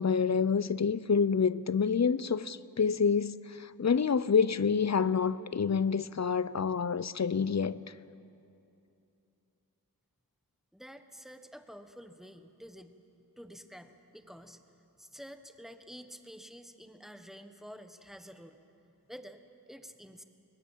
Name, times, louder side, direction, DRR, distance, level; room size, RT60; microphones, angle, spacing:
voice 1, 0.0-7.8, left 6 dB, 50° left, 0.6 m, -28 dB
voice 2, 10.7-13.0 13.4-14.6 15.0-18.6 19.1-20.2, equal, ahead, 1.3 m, -49 dB
21.5 x 19.5 x 7.4 m
wide cardioid pair, 45°, 37 cm